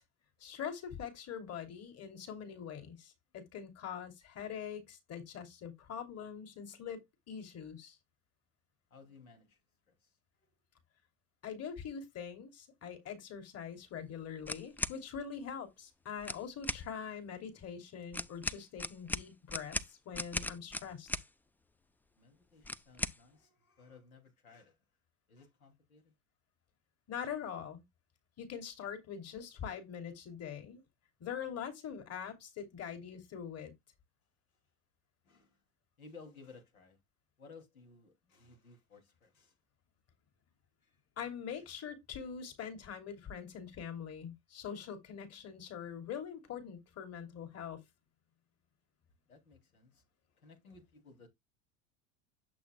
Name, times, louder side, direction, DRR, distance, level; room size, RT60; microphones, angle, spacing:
voice 1, 0.4-8.0 11.4-21.1 27.1-27.8 28.4-30.8 31.2-33.7 41.2-47.8, left 7 dB, 35° left, 3.0 m, -43 dB
voice 2, 8.9-10.1 22.2-24.8 25.3-26.1 35.2-35.6 36.0-37.0 37.4-39.6 40.8-41.0 49.3-50.0 50.4-51.3, left 4 dB, 85° left, 3.1 m, -58 dB
sound 1, 14.4-15.0 16.2-16.8 18.1-21.3 22.6-23.2, left 2 dB, 5° left, 0.5 m, -38 dB
10.5 x 7.4 x 2.3 m
hypercardioid pair, 80°, 41 cm